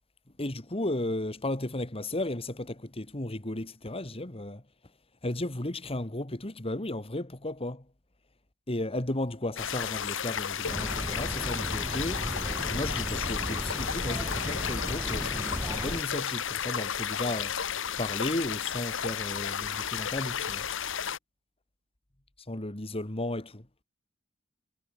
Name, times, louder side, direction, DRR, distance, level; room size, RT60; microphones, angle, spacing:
voice 1, 0.4-4.6 5.2-7.8 8.7-12.2 12.7-17.5 18.0-20.6 22.5-23.6, left 1 dB, 30° left, 2.0 m, -34 dB
sound 1, 9.6-21.2, left 8 dB, 65° left, 1.4 m, -33 dB
sound 2, 10.6-16.0, equal, 10° right, 2.6 m, -35 dB
head